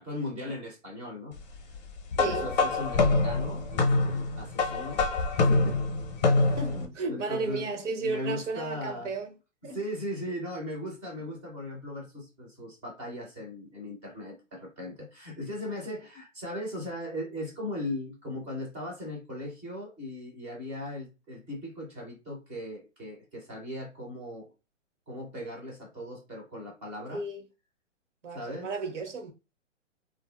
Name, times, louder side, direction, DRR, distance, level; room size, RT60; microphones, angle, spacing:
voice 1, 0.0-1.6 2.2-5.8 6.2-7.6 8.0-9.1 9.7-24.5 25.1-27.2 28.3-28.7, left 1 dB, 10° right, 0.4 m, -38 dB
sound 1, 2.1-6.8, left 3 dB, 35° left, 0.6 m, -25 dB
voice 2, 2.2-2.5 6.6-9.3 9.6-9.8 27.1-27.4 28.2-29.3, right 3 dB, 70° right, 0.9 m, -33 dB
2.8 x 2.5 x 2.3 m
hypercardioid pair, 145°, 38 cm